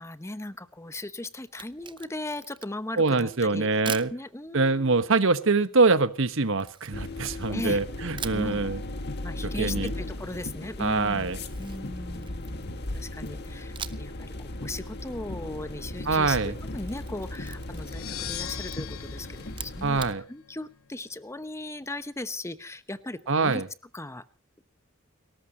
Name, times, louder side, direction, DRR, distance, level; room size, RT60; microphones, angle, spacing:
voice 1, 0.0-5.0 7.5-7.8 8.3-8.6 9.2-20.0 20.3-23.6 23.9-24.2, left 2 dB, 15° left, 13 dB, 0.9 m, -38 dB
Camera, 1.5-2.9 3.9-4.2 6.6-7.8 8.2-8.5 11.1-12.7 13.8-14.2 14.5-14.6 16.6-18.0 18.3-18.8 19.5-20.2, right 7 dB, 25° right, 0.7 m, -41 dB
voice 2, 3.0-4.1 4.5-8.8 9.6-9.9 10.8-11.4 16.1-16.5 19.8-20.2 23.3-23.7, right 3 dB, 65° right, 12 dB, 1.2 m, -24 dB
Inside Car - Raining Outside, 6.9-20.1, left 1 dB, 55° left, 1.7 m, -37 dB
sound 1, 17.7-20.6, left 11 dB, 85° left, 0.9 m, -40 dB
29.5 x 14.0 x 2.9 m, 0.35 s
head